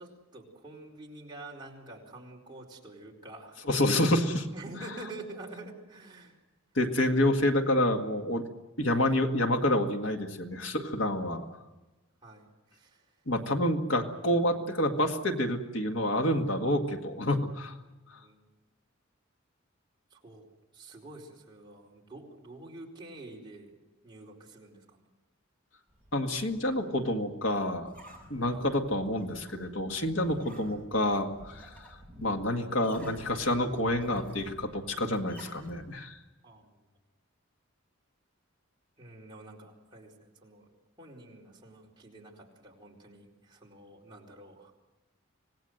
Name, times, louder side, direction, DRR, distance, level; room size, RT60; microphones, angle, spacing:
voice 1, 0.0-3.6 4.5-6.4 12.2-13.1 18.1-18.5 20.1-20.5 20.7-23.8 24.0-25.1 28.5-28.9 30.3-30.4 36.4-36.8 39.0-40.7 41.0-44.7, right 2 dB, 20° right, -3 dB, 4.4 m, -48 dB
voice 2, 3.7-4.5 6.8-8.4 8.8-11.5 13.3-17.8 18.1-18.2 26.1-27.9 28.3-31.9 32.2-36.2, left 1 dB, 65° left, 4 dB, 1.9 m, -28 dB
sound 1, 25.9-36.0, right 1 dB, 5° left, 6.1 m, -53 dB
26.0 x 19.0 x 7.9 m, 1.1 s
head